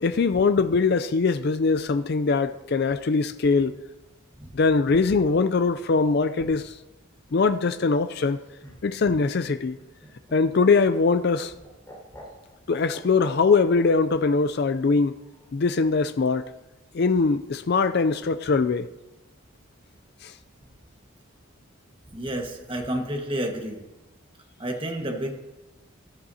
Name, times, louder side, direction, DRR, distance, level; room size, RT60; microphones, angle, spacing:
voice 1, 0.0-3.7 4.5-6.7 7.3-8.4 8.8-9.8 10.3-11.5 12.7-15.2 15.5-16.4 16.9-18.9 20.2-20.3, left 4 dB, 50° left, 0.4 m, -22 dB
Laughter, 8.3-13.9 15.2-15.8, equal, 15° left, 4.9 m, -47 dB
voice 2, 22.1-23.8 24.6-25.3, right 1 dB, 25° right, 1.5 m, -30 dB
17.0 x 13.0 x 2.8 m
head